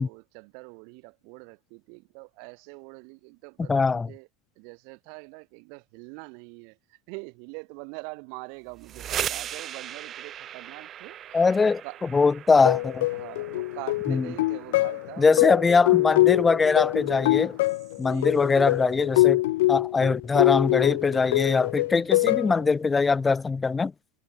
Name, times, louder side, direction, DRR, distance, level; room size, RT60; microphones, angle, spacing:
voice 1, 0.0-4.3 4.5-12.0 13.1-15.7 18.1-18.5 22.1-22.5, right 40 dB or more, 60° right, 6.9 m, -44 dB
voice 2, 3.7-4.1 11.3-11.8 12.1-13.1 14.1-14.3 15.2-17.6 18.0-19.4 19.7-23.9, left 4 dB, 15° left, 1.8 m, -22 dB
sound 1, 8.7-18.4, right 10 dB, 35° right, 3.7 m, -40 dB
sound 2, 12.6-22.6, left 18 dB, 75° left, 1.0 m, -24 dB
supercardioid pair, 125°, 0 cm